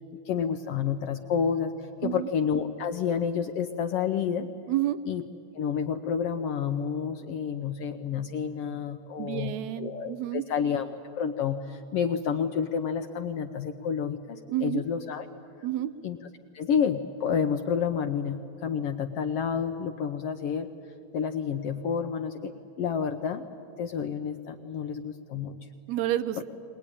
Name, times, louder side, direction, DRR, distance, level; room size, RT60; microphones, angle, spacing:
voice 1, 0.2-1.7 2.0-4.5 5.1-5.2 5.5-15.3 16.0-16.2 16.5-20.7 21.1-23.4 23.8-25.6, left 7 dB, 70° left, 7 dB, 1.5 m, -29 dB
voice 2, 4.7-5.0 9.2-10.4 14.5-14.8 15.6-15.9 25.9-26.5, right 13 dB, 75° right, 13 dB, 2.0 m, -29 dB
20.5 x 20.5 x 9.8 m, 2.5 s
omnidirectional pair, 3.4 m